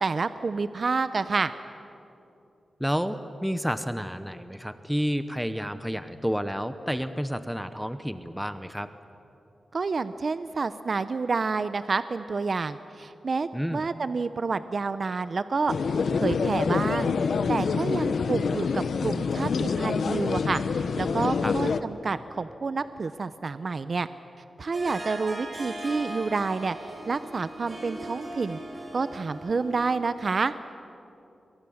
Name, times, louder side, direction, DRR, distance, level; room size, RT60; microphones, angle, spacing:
voice 1, 0.0-1.5 9.7-15.7 16.1-24.1 24.6-28.6 28.9-30.5, right 4 dB, 50° right, 12 dB, 0.7 m, -29 dB
voice 2, 2.8-8.9 13.5-13.8 21.4-21.5, equal, ahead, 10 dB, 0.9 m, -30 dB
sound 1, 15.7-21.8, left 5 dB, 80° left, 0.9 m, -26 dB
Harp, 24.7-30.2, right 1 dB, 30° right, 4.9 m, -39 dB
29.0 x 23.5 x 7.2 m, 2.8 s
wide cardioid pair, 115°, 0 cm